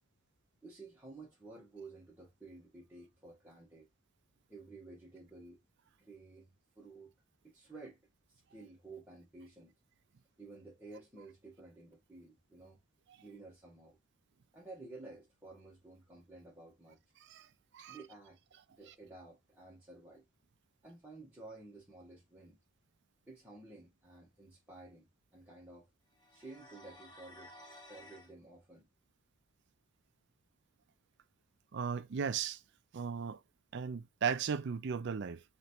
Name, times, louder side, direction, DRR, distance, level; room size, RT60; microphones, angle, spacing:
voice 1, 0.6-3.9 4.5-5.6 6.0-7.1 7.4-8.0 8.3-9.7 10.4-12.8 13.2-14.0 14.5-17.0 17.8-18.4 18.7-20.2 20.8-22.6 23.3-25.1 25.3-25.9 26.3-27.5 27.9-28.9, right 3 dB, 10° right, 1.1 m, -53 dB
sound 1, 26.2-28.3, left 1 dB, 20° left, 0.7 m, -55 dB
voice 2, 31.7-32.6 32.9-33.4 33.7-35.4, right 6 dB, 50° right, 0.4 m, -36 dB
3.3 x 3.1 x 4.3 m
head